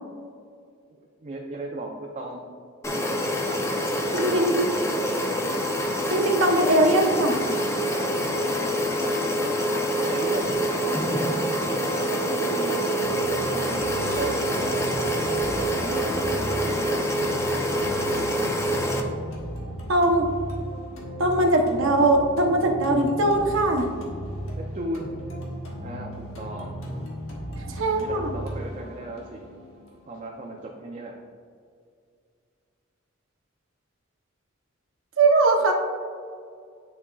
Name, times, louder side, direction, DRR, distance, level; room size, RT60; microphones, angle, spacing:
voice 1, 1.2-2.4 2.9-3.7 8.0-8.2 8.4-9.1 10.0-10.5 11.0-13.0 13.4-14.8 15.3-17.1 24.7-25.1 25.8-26.8 27.9-29.4 30.1-31.1, right 2 dB, 35° right, 0 dB, 0.5 m, -36 dB
sound 1, 2.8-19.0, equal, 15° left, 0.5 m, -26 dB
voice 2, 4.1-4.6 6.1-7.4 19.9-20.3 21.2-23.9 27.7-28.3 35.2-35.7, right 2 dB, 70° right, 2 dB, 0.8 m, -21 dB
sound 2, 13.0-31.0, equal, 85° left, 1.2 m, -36 dB
9.6 x 4.2 x 2.3 m, 2.3 s
head